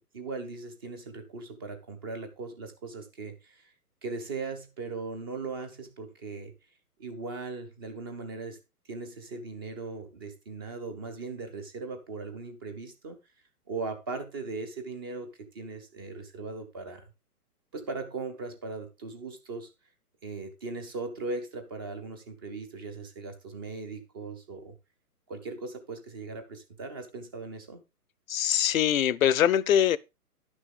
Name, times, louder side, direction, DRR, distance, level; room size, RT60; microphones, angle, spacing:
voice 1, 0.0-3.7 4.0-6.5 7.0-8.6 8.9-13.2 13.7-17.0 17.7-19.7 20.2-24.8 25.3-27.8, right 3 dB, 15° right, 0.6 m, -39 dB
voice 2, 28.3-30.0, left 10 dB, 60° left, 0.6 m, -23 dB
10.5 x 6.2 x 3.8 m
hypercardioid pair, 140°, 47 cm